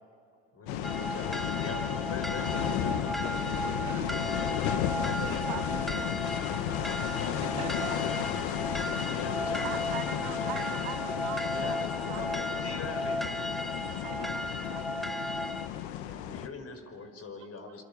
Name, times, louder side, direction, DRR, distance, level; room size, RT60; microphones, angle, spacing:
voice 1, 0.5-3.6 4.9-5.5 7.1-7.7 9.0-9.8 10.4-10.5 11.4-13.4 15.8-17.8, left 4 dB, 45° left, 5 dB, 5.1 m, -42 dB
sound 1, 0.7-16.5, left 10 dB, 90° left, 1.2 m, -33 dB
sound 2, 0.8-15.7, equal, ahead, 1.2 m, -35 dB
voice 2, 3.8-4.2 7.4-8.8 17.4-17.8, right 9 dB, 65° right, 4 dB, 2.9 m, -45 dB
voice 3, 5.1-6.2 9.6-12.7 14.0-15.3, right 15 dB, 85° right, 12 dB, 1.0 m, -43 dB
27.0 x 25.0 x 7.1 m, 2.4 s
supercardioid pair, 75°, 33 cm